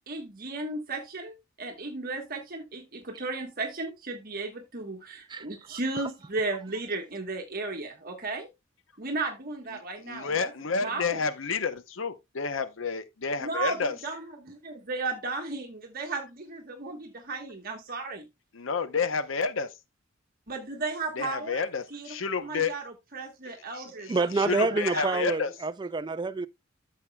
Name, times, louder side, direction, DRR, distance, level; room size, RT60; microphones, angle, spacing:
voice 1, 0.1-8.5 9.0-10.5 10.8-11.2 13.4-18.2 20.5-22.2 22.4-25.2, right 3 dB, 45° right, 1.3 m, -35 dB
voice 2, 10.1-13.9 18.5-19.7 21.2-22.7 24.0-25.5, left 5 dB, 70° left, 0.8 m, -30 dB
voice 3, 24.1-26.5, right 3 dB, 20° right, 0.4 m, -27 dB
13.0 x 6.7 x 2.2 m
head